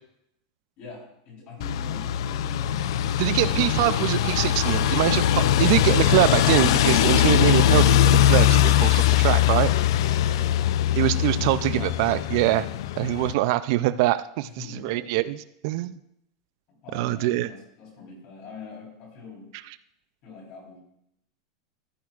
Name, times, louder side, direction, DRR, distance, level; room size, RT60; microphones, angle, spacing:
voice 1, 0.8-2.9 10.2-12.0 14.4-15.1 16.7-19.5 20.2-20.8, left 4 dB, 40° left, -1 dB, 3.6 m, -44 dB
sound 1, 1.6-13.3, left 11 dB, 65° left, 0.4 m, -21 dB
voice 2, 3.2-9.7 11.0-12.7 13.0-15.3 15.6-15.9 16.9-17.5, right 16 dB, 50° right, 15 dB, 0.3 m, -24 dB
14.5 x 9.4 x 2.4 m, 0.77 s
supercardioid pair, 160°, 3 cm